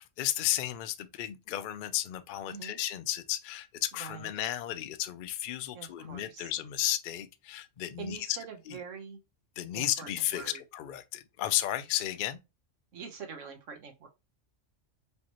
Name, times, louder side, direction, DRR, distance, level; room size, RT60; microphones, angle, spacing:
voice 1, 0.0-8.4 8.7-8.8 9.6-12.4, left 13 dB, 60° left, 0.5 m, -33 dB
voice 2, 2.5-2.8 4.0-4.3 5.7-6.5 8.0-9.2 9.7-10.6 12.9-14.1, right 6 dB, 75° right, 1.3 m, -44 dB
5.0 x 2.9 x 2.9 m
omnidirectional pair, 1.3 m